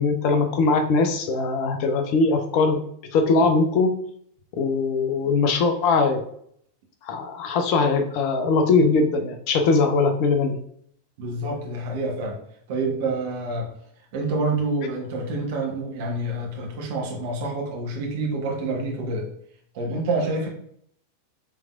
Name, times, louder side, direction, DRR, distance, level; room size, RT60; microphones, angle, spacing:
voice 1, 0.0-2.8 3.1-3.9 4.5-6.2 7.0-10.6, left 4 dB, 45° left, 6 dB, 0.7 m, -21 dB
voice 2, 11.2-12.4 12.7-13.7 14.1-19.3 19.7-20.5, right 2 dB, 50° right, -1 dB, 1.3 m, -27 dB
6.2 x 3.3 x 2.5 m, 0.67 s
figure-of-eight pair, 90°, 0 cm